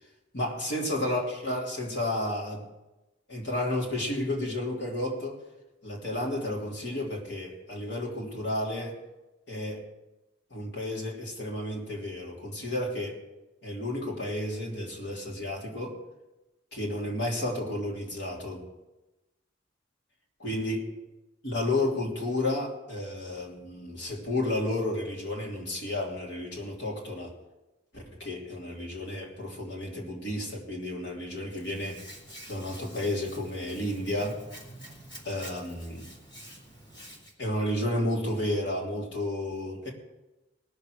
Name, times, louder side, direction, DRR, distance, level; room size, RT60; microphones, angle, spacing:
voice 1, 0.3-2.6 3.3-5.4 5.8-9.0 9.5-9.8 10.5-13.2 13.6-16.0 16.7-18.7 20.4-20.9 21.4-27.3 27.9-32.0 32.5-34.4 35.2-36.1 37.4-39.9, left 1 dB, 65° left, -2 dB, 3.1 m, -32 dB
Hands, 31.5-37.3, equal, 25° left, 2.7 m, -48 dB
19.0 x 6.8 x 6.3 m, 1.0 s
head